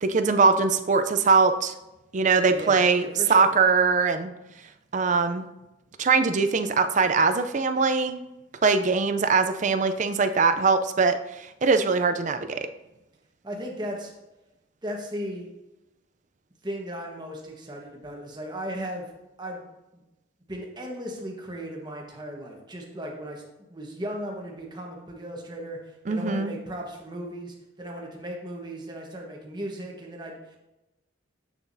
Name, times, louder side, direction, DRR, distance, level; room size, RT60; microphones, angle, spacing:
voice 1, 0.0-1.7 2.1-4.3 4.9-5.5 6.0-8.2 8.6-12.7 26.1-26.5, right 4 dB, 40° right, 9 dB, 0.4 m, -22 dB
voice 2, 2.5-3.5 13.4-14.1 14.8-15.5 16.6-19.1 19.4-19.6 20.5-23.4 23.7-30.6, equal, 20° right, 0 dB, 1.2 m, -36 dB
8.0 x 7.0 x 2.6 m, 0.95 s
head